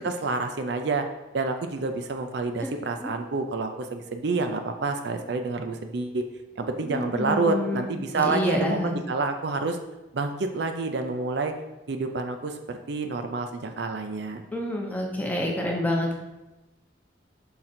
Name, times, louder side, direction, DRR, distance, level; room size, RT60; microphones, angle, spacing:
voice 1, 0.0-1.1 1.3-6.2 6.6-9.8 10.1-11.5 11.9-14.4, right 3 dB, 60° right, 6 dB, 0.4 m, -28 dB
voice 2, 6.8-7.9 8.1-8.9 14.5-16.1, left 1 dB, 10° left, 0 dB, 0.7 m, -28 dB
5.8 x 3.8 x 4.3 m, 1.0 s
head